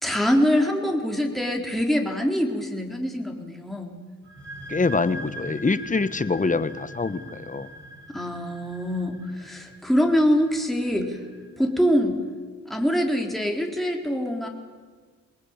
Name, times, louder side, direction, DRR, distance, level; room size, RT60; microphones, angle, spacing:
voice 1, 0.0-4.0 8.1-11.2 11.6-12.2 12.7-14.5, equal, ahead, 1 dB, 3.7 m, -24 dB
sound 1, 4.2-11.7, right 1 dB, 35° right, 5.1 m, -42 dB
voice 2, 4.7-7.7, left 3 dB, 25° left, 14 dB, 1.3 m, -25 dB
23.5 x 18.5 x 8.9 m, 1.5 s
cardioid pair, 65°, 32 cm